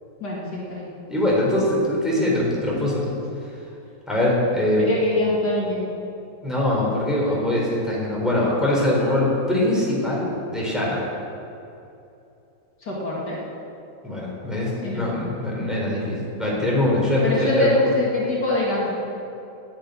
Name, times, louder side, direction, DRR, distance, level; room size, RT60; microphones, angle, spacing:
voice 1, 0.2-0.9 4.8-5.8 12.9-13.4 14.8-15.0 17.2-18.9, left 2 dB, 60° left, -5 dB, 2.9 m, -23 dB
voice 2, 1.1-3.0 4.1-4.9 6.4-11.0 14.0-17.8, left 1 dB, ahead, -5 dB, 3.9 m, -22 dB
10.0 x 9.6 x 9.3 m, 2.8 s
omnidirectional pair, 2.0 m